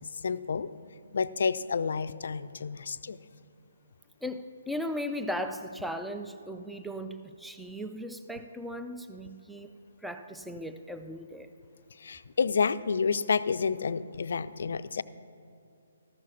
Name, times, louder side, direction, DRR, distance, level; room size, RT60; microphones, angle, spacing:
voice 1, 0.2-0.7 1.1-3.2 12.0-15.0, left 5 dB, 65° left, 14 dB, 0.4 m, -29 dB
voice 2, 4.2-9.7 10.0-11.5, equal, ahead, 7 dB, 0.4 m, -37 dB
13.5 x 6.3 x 5.8 m, 2.7 s
hypercardioid pair, 145°, 0 cm